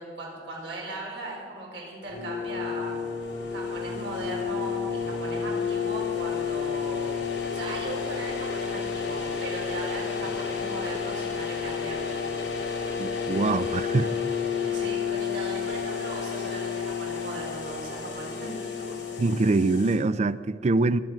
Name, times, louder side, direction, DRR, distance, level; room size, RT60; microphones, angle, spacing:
voice 1, 0.0-3.0 3.5-7.1 7.5-12.1 14.6-19.0, right 2 dB, 80° right, -3 dB, 4.6 m, -38 dB
sound 1, 2.1-20.0, left 6 dB, 85° left, 3.3 m, -31 dB
voice 2, 13.0-14.1 19.2-21.0, right 3 dB, 40° right, 16 dB, 0.4 m, -24 dB
22.5 x 7.7 x 6.1 m, 2.1 s
head